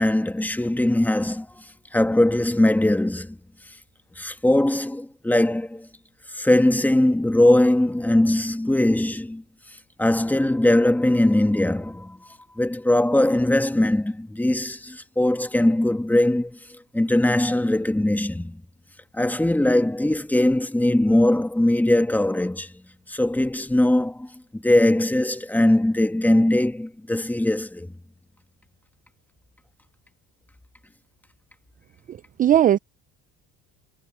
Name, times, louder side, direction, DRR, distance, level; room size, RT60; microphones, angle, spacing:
voice 1, 0.0-1.5 1.9-3.4 4.2-5.9 6.3-9.4 10.0-12.2 12.6-18.6 19.1-22.7 23.1-27.9, left 1 dB, 5° left, 1.8 m, -21 dB
voice 2, 32.1-32.8, right 11 dB, 25° right, 0.4 m, -19 dB
cardioid pair, 110°, 32 cm